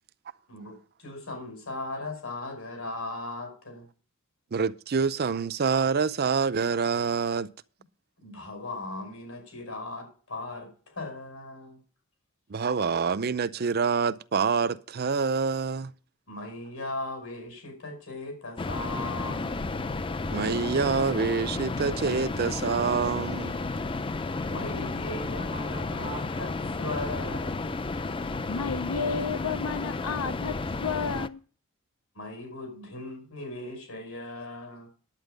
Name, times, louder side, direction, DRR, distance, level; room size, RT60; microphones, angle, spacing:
voice 1, 0.5-3.9 8.2-11.8 16.3-19.8 24.5-26.5 26.8-27.7 32.1-34.9, left 2 dB, 75° left, 5.5 m, -38 dB
voice 2, 4.5-7.5 12.5-15.9 20.3-23.5, right 5 dB, 45° right, 0.5 m, -26 dB
sound 1, 18.6-31.3, left 3 dB, 25° left, 0.5 m, -32 dB
voice 3, 28.5-30.5 30.8-31.4, left 5 dB, 90° left, 0.6 m, -31 dB
10.0 x 8.9 x 5.1 m
head